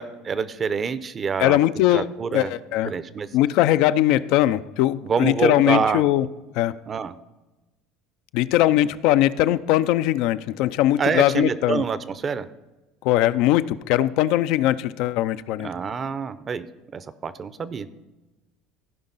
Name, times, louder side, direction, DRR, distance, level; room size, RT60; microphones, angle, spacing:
voice 1, 0.0-1.6 1.9-2.5 2.8-3.3 5.0-6.0 6.9-7.2 11.0-12.5 15.6-16.7 16.9-17.9, right 6 dB, 35° right, 15 dB, 0.6 m, -26 dB
voice 2, 1.4-2.1 2.3-2.9 3.3-6.3 6.6-6.7 8.3-11.8 13.0-15.7, left 14 dB, 70° left, 14 dB, 0.4 m, -20 dB
15.5 x 5.3 x 4.0 m, 1.1 s
supercardioid pair, 90°, 0 cm